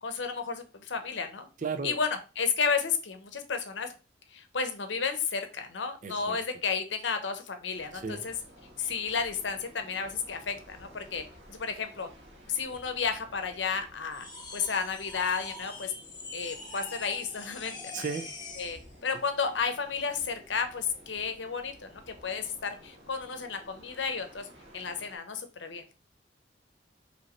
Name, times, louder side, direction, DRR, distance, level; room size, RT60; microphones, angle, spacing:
voice 1, 0.0-1.5 1.8-3.9 4.3-8.3 8.8-12.1 12.5-15.9 16.3-18.0 18.6-24.5 24.7-26.0, left 5 dB, 80° left, 0.8 m, -32 dB
voice 2, 1.6-2.0 6.0-6.4 7.9-8.3 17.9-18.3, right 5 dB, 45° right, 0.5 m, -35 dB
sound 1, 7.7-25.2, equal, 70° right, 1.3 m, -54 dB
sound 2, 14.1-18.8, left 3 dB, 25° left, 1.1 m, -44 dB
5.0 x 3.2 x 3.0 m
head